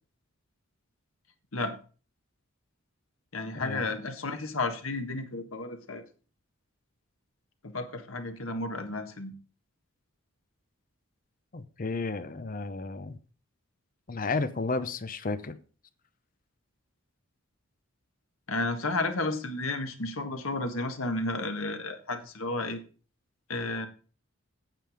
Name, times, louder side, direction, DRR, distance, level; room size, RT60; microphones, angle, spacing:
voice 1, 3.3-6.0 7.6-9.3 18.5-22.8 23.5-23.9, left 2 dB, 80° left, 1.5 m, -32 dB
voice 2, 11.5-13.2 14.1-15.6, left 3 dB, 40° left, 0.7 m, -32 dB
9.1 x 7.4 x 5.0 m
head